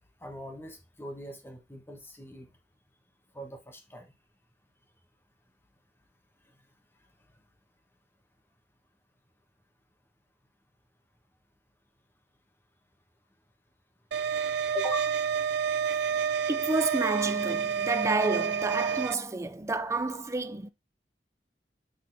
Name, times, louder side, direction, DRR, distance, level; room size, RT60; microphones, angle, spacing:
voice 1, 0.2-2.5 3.3-4.1 14.7-15.1, left 2 dB, 15° left, 1.4 m, -40 dB
sound 1, 14.1-19.1, right 7 dB, 70° right, 0.4 m, -29 dB
voice 2, 16.5-20.7, right 2 dB, 15° right, 0.5 m, -30 dB
6.6 x 4.1 x 4.0 m
head